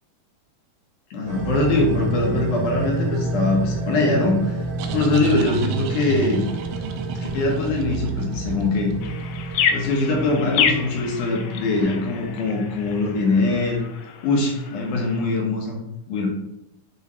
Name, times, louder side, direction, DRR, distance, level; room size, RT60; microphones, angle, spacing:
voice 1, 1.1-4.6 4.9-6.4 7.3-8.9 9.7-13.8 14.2-15.8 16.1-16.3, left 2 dB, 70° left, -1 dB, 2.6 m, -22 dB
sound 1, 1.3-13.7, right 2 dB, 60° right, 1.7 m, -30 dB
sound 2, 4.3-9.8, right 6 dB, 85° right, 2.4 m, -31 dB
sound 3, 9.0-15.2, left 7 dB, 85° left, 1.5 m, -28 dB
8.3 x 4.9 x 3.2 m, 0.86 s
omnidirectional pair, 4.0 m